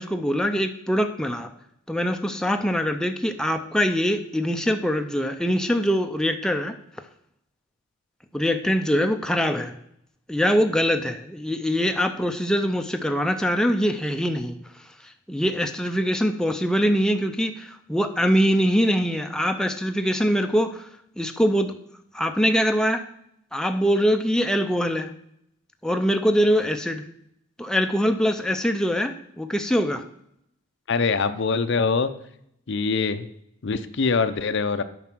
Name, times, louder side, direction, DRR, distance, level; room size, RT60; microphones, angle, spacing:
voice 1, 0.0-1.5 1.9-6.7 8.3-9.7 10.3-14.6 15.3-20.9 21.2-21.7 22.1-23.0 23.5-25.1 25.8-27.0 27.6-30.0, equal, 5° left, 5 dB, 0.5 m, -23 dB
voice 2, 30.9-32.1 32.7-33.3 33.6-34.8, left 4 dB, 55° left, 11 dB, 0.6 m, -23 dB
9.2 x 5.5 x 6.1 m, 0.73 s
head